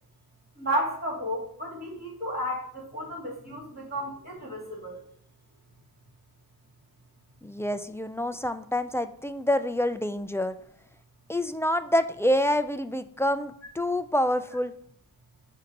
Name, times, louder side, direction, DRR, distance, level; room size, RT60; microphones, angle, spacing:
voice 1, 0.6-5.0, equal, 25° right, -3 dB, 2.7 m, -32 dB
voice 2, 7.4-10.6 11.3-14.7, left 1 dB, 5° left, 10 dB, 0.3 m, -27 dB
6.8 x 2.8 x 5.1 m, 0.64 s
wide cardioid pair, 70°, 38 cm